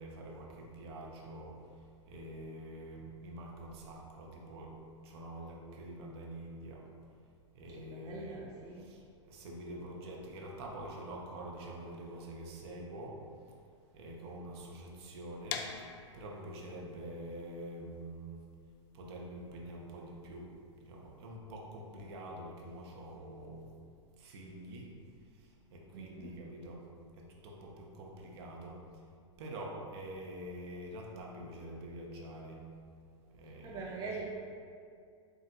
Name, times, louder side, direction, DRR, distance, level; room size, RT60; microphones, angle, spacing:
voice 1, 0.0-4.8 5.0-6.9 7.5-13.2 13.5-13.6 13.9-15.9 16.1-18.4 18.9-20.5 20.8-23.7 24.2-24.9 25.3-26.9 27.1-29.0 29.4-32.7 33.3-34.2, right 1 dB, 55° right, -2 dB, 0.9 m, -46 dB
voice 2, 7.7-8.9 25.9-26.3 33.6-34.2, right 4 dB, 25° right, -3 dB, 0.5 m, -43 dB
sound 1, 15.5-21.3, left 7 dB, 45° left, 0.4 m, -46 dB
7.5 x 2.6 x 2.5 m, 2.3 s
hypercardioid pair, 105°, 16 cm